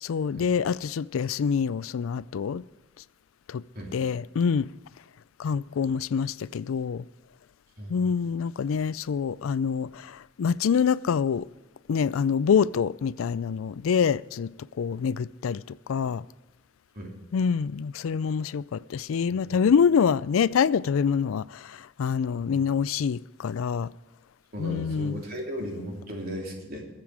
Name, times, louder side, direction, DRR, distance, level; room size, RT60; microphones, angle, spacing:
voice 1, 0.0-2.6 3.5-3.6 3.9-4.7 5.4-7.0 7.9-11.5 11.9-14.5 14.8-16.2 17.3-23.9 24.6-25.2, left 6 dB, 90° left, 0.4 m, -26 dB
voice 2, 7.8-8.1 16.9-17.1 19.3-19.6 24.5-26.8, equal, 50° right, 3.2 m, -36 dB
21.5 x 7.6 x 4.9 m
head